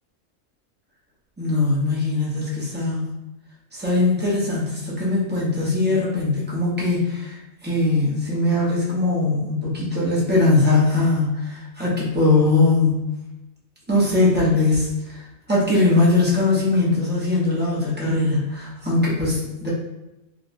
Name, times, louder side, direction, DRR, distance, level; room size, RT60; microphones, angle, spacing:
voice 1, 1.4-3.1 3.7-7.4 7.6-13.1 13.9-15.2 15.5-19.7, left 2 dB, 10° right, -7 dB, 0.7 m, -20 dB
4.1 x 2.2 x 2.6 m, 0.95 s
omnidirectional pair, 1.3 m